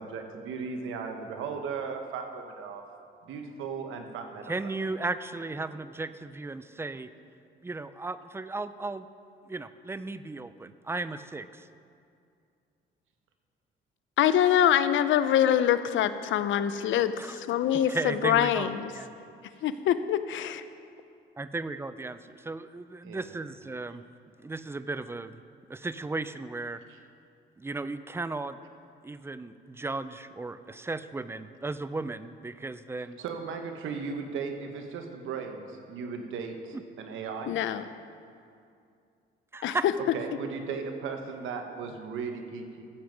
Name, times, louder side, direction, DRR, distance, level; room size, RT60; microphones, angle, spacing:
voice 1, 0.0-2.8 3.2-4.5 23.0-23.4 33.2-37.6 40.1-42.8, right 5 dB, 85° right, 5 dB, 1.2 m, -36 dB
voice 2, 4.5-7.1 7.6-9.0 9.5-11.7 17.2-17.4 17.9-19.1 21.4-24.0 24.4-25.4 25.7-26.8 27.6-28.6 29.0-33.2 36.7-36.8 39.5-39.9, right 3 dB, 10° right, 13 dB, 0.4 m, -35 dB
voice 3, 14.2-18.9 19.6-20.6 37.5-37.8 39.6-39.8, left 10 dB, 75° left, 12 dB, 0.6 m, -24 dB
13.0 x 7.9 x 5.2 m, 2.4 s
cardioid pair, 90°, 20 cm